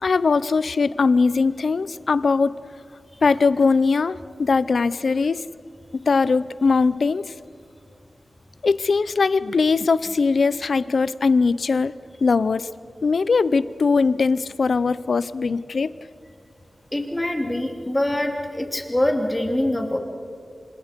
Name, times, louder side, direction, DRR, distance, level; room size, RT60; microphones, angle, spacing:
voice 1, 0.0-2.5 3.2-5.4 6.0-7.3 8.6-11.9 12.2-12.7 13.0-15.9, left 4 dB, 75° left, 16 dB, 0.6 m, -20 dB
voice 2, 16.9-20.0, left 1 dB, 20° left, 3 dB, 2.9 m, -24 dB
29.0 x 26.0 x 5.2 m, 2.2 s
wide cardioid pair, 80°, 0 cm